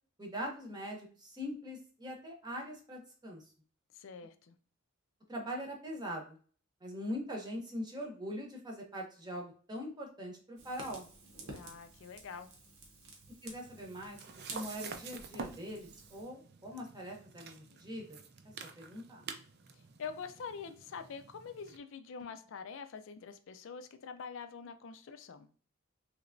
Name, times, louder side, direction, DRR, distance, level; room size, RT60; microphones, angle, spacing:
voice 1, 0.2-3.4 5.3-6.4 6.8-11.1 13.4-14.2 14.5-18.2 18.6-19.3, equal, 20° right, 0.8 m, -42 dB
voice 2, 3.9-4.5 11.5-12.5 20.0-25.5, left 5 dB, 65° left, 0.4 m, -45 dB
Fire, 10.6-16.2, right 2 dB, 80° right, 0.9 m, -51 dB
sound 1, 13.5-21.8, right 5 dB, 50° right, 0.4 m, -49 dB
3.3 x 3.0 x 2.5 m
head